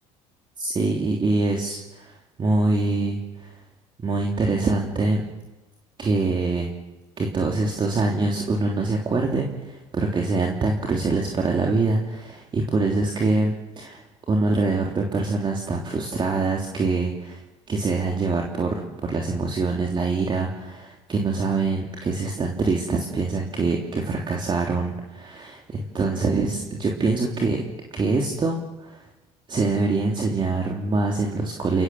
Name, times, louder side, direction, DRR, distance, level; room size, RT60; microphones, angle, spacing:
voice 1, 0.6-2.1 2.4-3.5 4.0-5.2 6.0-6.7 7.2-14.0 14.3-17.4 17.7-27.6 27.9-29.0 29.5-31.8, right 3 dB, 30° right, 0 dB, 3.3 m, -24 dB
30.0 x 19.5 x 7.4 m, 1.1 s
supercardioid pair, 95°, 15 cm